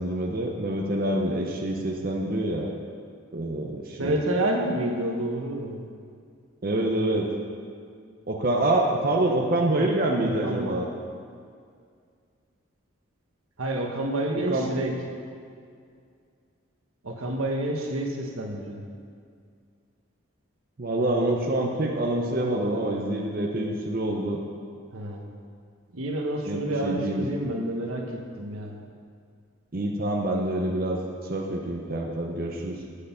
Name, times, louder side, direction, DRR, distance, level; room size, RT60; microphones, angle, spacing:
voice 1, 0.0-2.7 3.3-4.2 6.6-7.3 8.3-10.9 14.5-14.7 20.8-24.4 26.5-27.3 29.7-31.0 31.3-32.8, right 1 dB, 45° right, 0 dB, 0.7 m, -26 dB
voice 2, 4.0-5.8 9.7-9.8 10.2-10.8 13.6-14.9 17.0-18.8 24.9-25.2 25.9-28.8, right 1 dB, 85° right, 1 dB, 1.2 m, -29 dB
7.7 x 6.6 x 6.9 m, 2.2 s
head